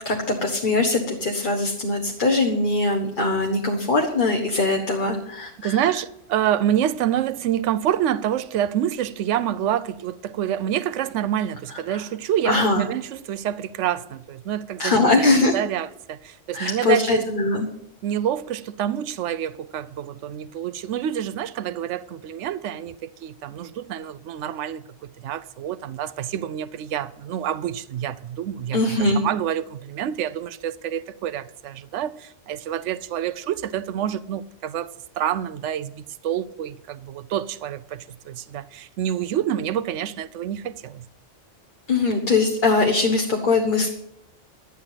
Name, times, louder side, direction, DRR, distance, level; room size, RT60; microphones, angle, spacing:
voice 1, 0.0-5.8 11.9-12.0 12.4-12.9 14.8-15.5 16.5-17.7 28.7-29.2 41.9-43.9, left 3 dB, 45° left, 1.3 m, -21 dB
voice 2, 5.6-17.2 18.0-41.0, right 10 dB, 80° right, 0.9 m, -27 dB
12.0 x 9.7 x 5.8 m
omnidirectional pair, 1.2 m